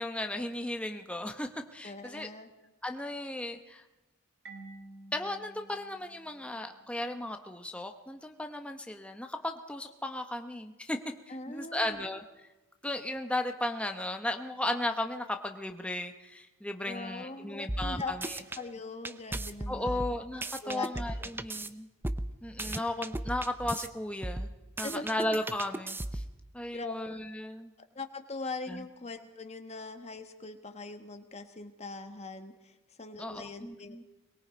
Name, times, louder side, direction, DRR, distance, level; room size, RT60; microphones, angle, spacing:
voice 1, 0.0-2.3 2.8-3.8 5.1-11.0 11.5-12.2 12.8-18.4 19.7-21.9 22.4-24.5 24.8-26.2 26.5-27.7 28.7-28.8 33.2-34.0, left 1 dB, 5° left, 5 dB, 0.9 m, -35 dB
voice 2, 1.8-2.5 11.3-12.0 16.8-18.1 18.5-20.0 20.6-21.3 24.8-25.1 26.7-26.9 27.8-34.0, left 3 dB, 30° left, 7 dB, 1.5 m, -41 dB
Marimba xylophone, 4.4-7.1, right 2 dB, 55° right, 2.3 m, -51 dB
sound 1, 17.7-18.6 19.0-21.7 22.0-23.9 24.2-26.4, right 1 dB, 10° right, 0.6 m, -36 dB
22.5 x 22.5 x 5.2 m, 1.1 s
head